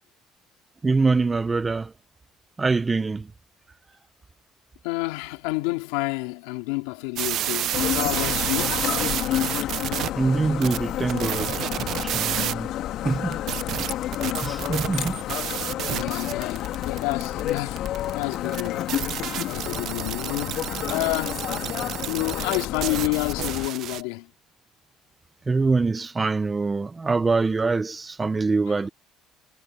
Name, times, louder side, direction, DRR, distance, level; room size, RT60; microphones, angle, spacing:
voice 1, 0.8-1.9 2.6-3.3 10.2-11.5 11.8-12.7 13.0-13.4 14.4-15.2 25.5-28.9, right 4 dB, 25° right, 1.1 m, -24 dB
voice 2, 4.8-8.8 14.6-15.1 15.8-18.9 19.5-20.6 20.9-21.4 22.1-24.3 28.7-28.8, left 24 dB, 85° left, 2.7 m, -29 dB
sound 1, 7.2-10.1 10.6-12.5 13.3-24.0, right 12 dB, 65° right, 0.9 m, -30 dB
sound 2, 7.7-23.7, left 13 dB, 65° left, 2.3 m, -30 dB
supercardioid pair, 80°, 0 cm